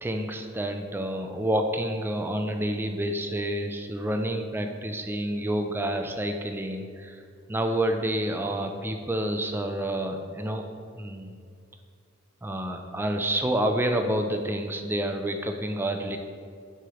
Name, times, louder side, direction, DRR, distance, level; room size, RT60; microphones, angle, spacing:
voice 1, 0.0-7.2 7.5-10.6 10.9-11.3 12.4-16.2, right 1 dB, 10° right, 5 dB, 0.4 m, -28 dB
7.7 x 3.0 x 4.9 m, 2.3 s
head